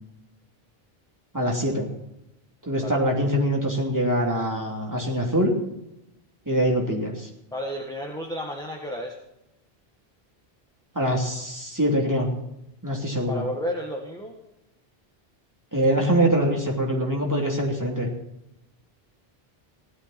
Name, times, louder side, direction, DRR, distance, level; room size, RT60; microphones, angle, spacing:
voice 1, 1.3-1.9 2.7-5.5 6.5-7.3 10.9-12.3 12.8-13.4 15.7-18.1, equal, 15° right, -1 dB, 3.0 m, -24 dB
voice 2, 7.5-9.2 13.3-14.4, equal, 5° left, 1 dB, 1.5 m, -32 dB
16.5 x 12.5 x 4.3 m, 0.87 s
omnidirectional pair, 1.0 m